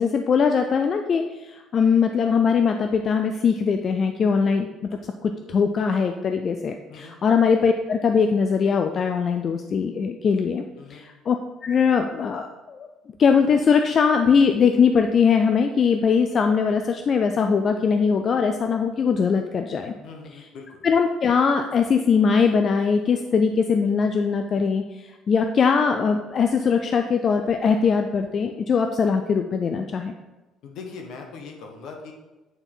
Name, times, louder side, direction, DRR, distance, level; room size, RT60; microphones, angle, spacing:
voice 1, 0.0-4.7 5.2-10.6 10.9-11.4 11.6-12.9 13.2-19.9 20.3-20.5 20.8-30.1, left 6 dB, 30° left, 5 dB, 0.3 m, -21 dB
voice 2, 20.0-20.8 30.6-32.1, left 4 dB, 60° left, 2 dB, 1.2 m, -40 dB
9.0 x 4.1 x 3.8 m, 1.1 s
cardioid pair, 175°, 0 cm